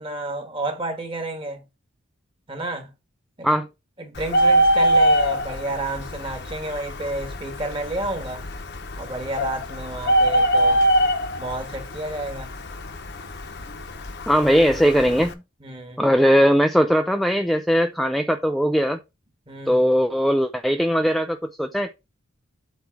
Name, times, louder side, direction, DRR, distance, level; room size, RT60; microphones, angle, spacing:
voice 1, 0.0-1.6 2.5-2.9 3.4-3.5 4.0-8.4 9.0-10.8 11.4-12.5 15.6-16.0 19.5-19.8, right 2 dB, 25° right, 1.6 m, -31 dB
Bird, 4.2-15.3, right 1 dB, 55° left, 1.0 m, -23 dB
voice 2, 14.3-15.3 16.0-19.0 19.7-21.9, equal, ahead, 0.4 m, -19 dB
8.1 x 3.1 x 6.0 m
head